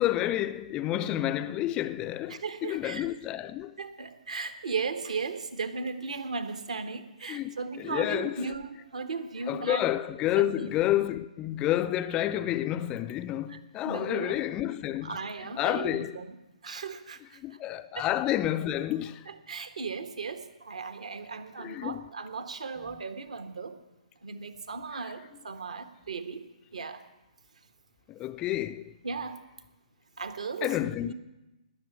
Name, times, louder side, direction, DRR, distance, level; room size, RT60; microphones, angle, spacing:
voice 1, 0.0-3.7 7.2-8.6 9.5-15.2 15.6-16.2 17.4-19.3 21.6-22.0 25.0-25.1 28.1-28.9 30.6-31.1, left 13 dB, 20° left, 0.4 m, -30 dB
voice 2, 2.3-3.1 3.8-9.8 10.4-10.7 13.5-13.6 13.8-14.4 15.0-16.3 16.6-17.4 17.9-18.1 19.3-23.8 24.2-26.5 26.7-27.0 29.0-29.4 30.2-31.1, right 4 dB, 65° right, 1.5 m, -36 dB
19.5 x 7.1 x 8.6 m
figure-of-eight pair, 125°, 4 cm